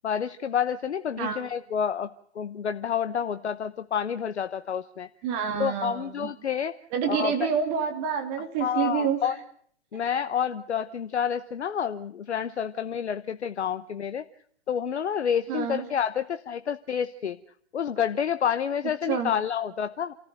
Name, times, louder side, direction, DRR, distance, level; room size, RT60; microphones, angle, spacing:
voice 1, 0.0-2.1 2.4-5.1 5.6-6.8 7.1-7.3 8.6-9.4 9.9-14.2 14.7-17.4 17.7-20.1, left 8 dB, 65° left, 10 dB, 0.9 m, -29 dB
voice 2, 5.2-6.3 6.9-9.3 9.9-10.0 15.5-15.9 19.1-19.3, right 7 dB, 30° right, 4 dB, 3.0 m, -28 dB
28.5 x 14.5 x 7.9 m, 0.65 s
figure-of-eight pair, 120°, 36 cm